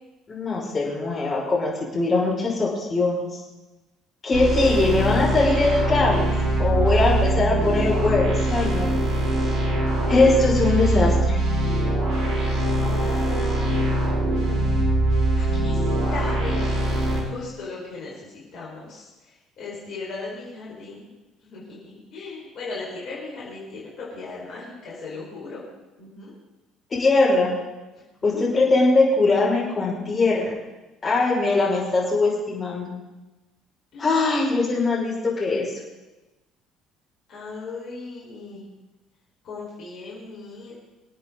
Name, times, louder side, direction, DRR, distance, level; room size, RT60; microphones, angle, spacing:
voice 1, 0.3-3.3 4.2-6.3 6.6-8.9 10.1-11.4 26.9-27.5 28.2-30.5 31.0-32.9 34.0-35.7, left 3 dB, 35° left, -4 dB, 5.9 m, -21 dB
sound 1, 4.3-17.2, right 1 dB, 50° right, 5.0 m, -22 dB
voice 2, 12.7-14.9 15.4-16.7 17.3-19.1 19.6-21.1 21.4-25.6 26.0-26.3 28.5-28.6 33.9-34.2 37.3-38.7 39.4-40.7, left 3 dB, 60° left, -5 dB, 4.9 m, -37 dB
26.5 x 8.9 x 4.0 m, 1.1 s
hypercardioid pair, 60°, 0 cm